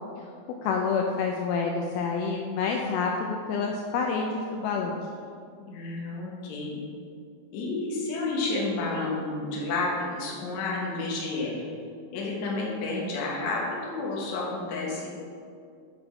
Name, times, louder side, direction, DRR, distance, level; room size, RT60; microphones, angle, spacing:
voice 1, 0.6-5.0, left 5 dB, 80° left, 1 dB, 2.3 m, -28 dB
voice 2, 5.6-6.8 7.5-11.7 12.1-15.1, left 3 dB, 60° left, -3 dB, 2.1 m, -30 dB
7.9 x 5.2 x 4.5 m, 2.3 s
omnidirectional pair, 4.5 m